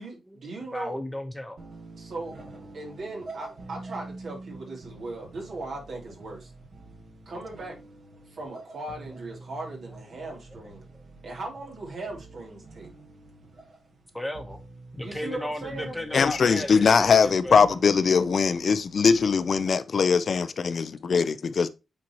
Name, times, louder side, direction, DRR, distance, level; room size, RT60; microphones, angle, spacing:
voice 1, 0.0-1.0 1.9-2.3 2.7-6.5 7.2-7.8 8.3-10.9 11.2-12.9 15.0-16.0, right 2 dB, 65° right, 3.1 m, -38 dB
voice 2, 0.7-1.6 3.1-3.2 5.4-5.6 10.5-10.6 10.9-11.0 14.1-14.6 14.9-17.6 19.8-19.9 20.3-20.7 21.5-21.6, left 1 dB, 5° left, 1.1 m, -36 dB
sound 1, 1.6-19.6, right 2 dB, 50° right, 1.5 m, -46 dB
voice 3, 16.1-21.7, left 5 dB, 50° left, 0.5 m, -21 dB
8.7 x 4.3 x 3.0 m
wide cardioid pair, 130°, 0 cm